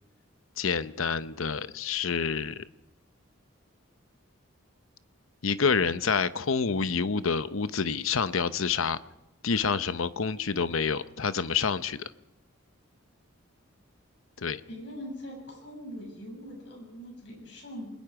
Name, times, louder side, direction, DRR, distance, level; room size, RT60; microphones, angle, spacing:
voice 1, 0.6-2.6 5.4-9.0 9.4-12.0 14.4-14.6, left 5 dB, 85° left, 13 dB, 0.8 m, -28 dB
voice 2, 14.7-17.9, equal, 60° left, 2 dB, 7.0 m, -42 dB
28.5 x 21.0 x 4.9 m, 0.87 s
head